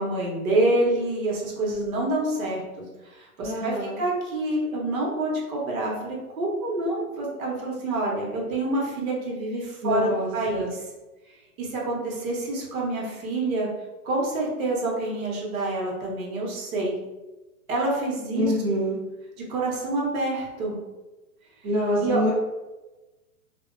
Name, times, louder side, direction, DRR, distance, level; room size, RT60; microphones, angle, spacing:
voice 1, 0.0-2.6 3.1-10.7 11.6-13.7 14.0-17.0 17.7-18.8 19.5-20.8 22.0-22.2, right 2 dB, 65° right, -3 dB, 1.1 m, -27 dB
voice 2, 3.4-4.0 9.8-10.7 18.3-19.0 21.6-22.3, equal, 15° right, -9 dB, 0.6 m, -26 dB
2.6 x 2.2 x 2.5 m, 1.1 s
hypercardioid pair, 140°, 45 cm